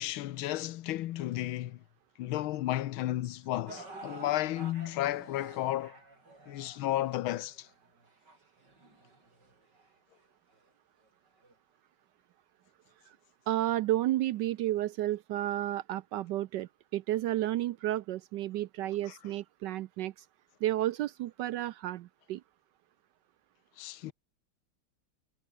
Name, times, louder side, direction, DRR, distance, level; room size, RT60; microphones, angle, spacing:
voice 1, 0.0-1.8 2.2-6.0 6.5-7.7 23.8-24.1, left 14 dB, 85° left, 1.6 m, -33 dB
sound 1, 3.7-9.9 10.6-10.7 11.4-11.5, right 2 dB, 55° right, 7.5 m, -50 dB
voice 2, 13.5-20.1 20.6-22.4, right 14 dB, 70° right, 1.1 m, -32 dB
omnidirectional pair, 2.2 m